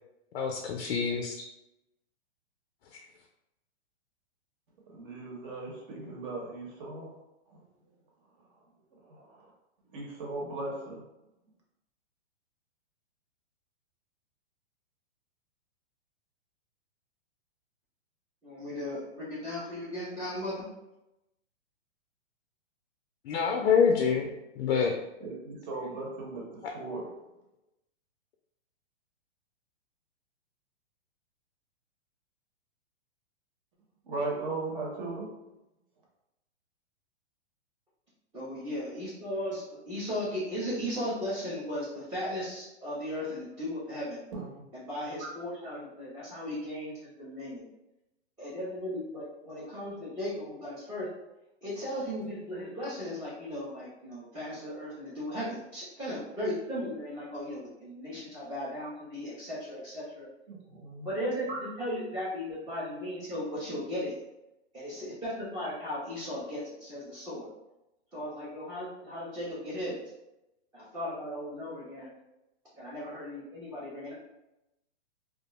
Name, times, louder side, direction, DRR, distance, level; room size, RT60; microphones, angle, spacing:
voice 1, 0.3-1.4 23.2-25.0, left 6 dB, 65° left, 2 dB, 0.5 m, -26 dB
voice 2, 4.9-7.2 7.5-7.6 9.0-9.5 9.9-11.0 25.2-27.1 34.0-35.4 44.3-44.5 60.8-61.1 61.5-61.6, right 3 dB, 50° right, -2 dB, 1.0 m, -37 dB
voice 3, 18.4-20.7 38.3-44.2 44.7-47.7 48.4-51.1 51.6-60.3 61.0-61.5 61.8-64.1 64.7-67.5 68.1-70.0 70.7-72.1 72.8-74.1, left 1 dB, 10° right, -11 dB, 0.5 m, -36 dB
2.3 x 2.1 x 2.9 m, 0.91 s
hypercardioid pair, 140°, 34 cm